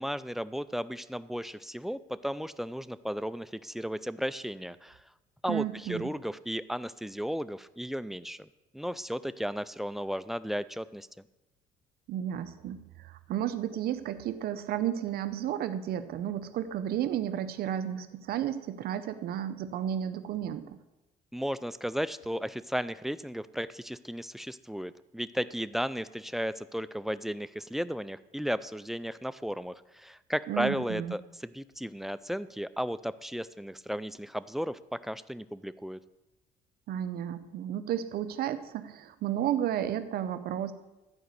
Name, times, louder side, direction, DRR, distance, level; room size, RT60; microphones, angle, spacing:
voice 1, 0.0-5.0 5.4-8.5 8.7-11.1 21.3-36.0, equal, ahead, 15 dB, 0.3 m, -34 dB
voice 2, 5.5-6.1 12.1-20.8 30.5-31.2 36.9-40.7, right 10 dB, 65° right, 11 dB, 0.7 m, -32 dB
13.0 x 5.1 x 8.1 m, 1.0 s
cardioid pair, 110°, 17 cm